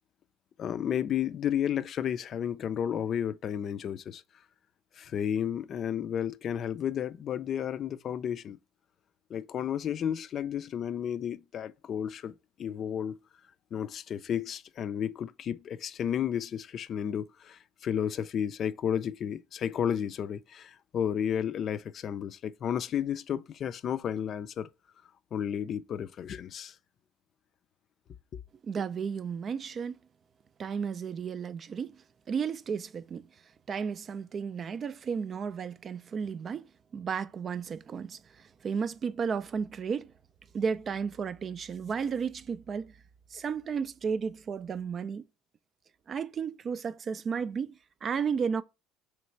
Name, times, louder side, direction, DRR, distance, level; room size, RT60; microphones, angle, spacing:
voice 1, 0.6-4.2 5.0-8.6 9.3-12.3 12.6-13.2 13.7-24.7 25.3-26.7 28.3-28.4, left 9 dB, 50° left, 0.4 m, -32 dB
voice 2, 28.6-30.0 30.6-32.0 32.3-33.3 33.7-40.1 40.5-43.0 43.3-45.2 46.1-48.6, right 6 dB, 40° right, 0.3 m, -33 dB
3.3 x 3.1 x 4.3 m
hypercardioid pair, 75°, 0 cm